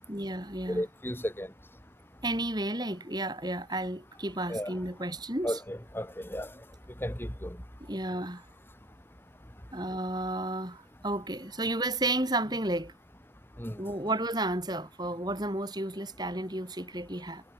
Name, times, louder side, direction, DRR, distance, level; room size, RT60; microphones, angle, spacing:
voice 1, 0.1-0.8 2.2-5.6 7.9-8.4 9.7-12.9 13.8-17.4, right 1 dB, 20° right, 6.5 m, -32 dB
voice 2, 0.7-1.5 4.5-4.7 5.4-6.5 7.0-7.6 13.6-13.8, equal, 10° left, 2.9 m, -34 dB
head